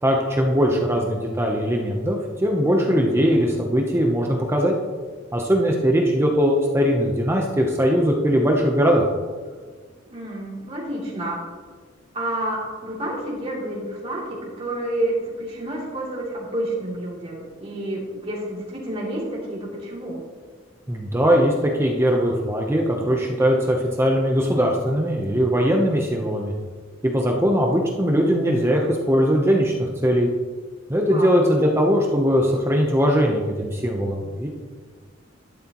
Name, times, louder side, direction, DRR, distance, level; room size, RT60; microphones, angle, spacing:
voice 1, 0.0-4.8 5.3-9.0 20.9-26.5 27.1-30.3 30.9-34.5, equal, 15° right, 0 dB, 0.8 m, -20 dB
voice 2, 10.0-11.4 12.1-20.2 31.1-31.4, right 1 dB, 30° right, -5 dB, 3.0 m, -29 dB
12.0 x 11.5 x 3.0 m, 1.5 s
head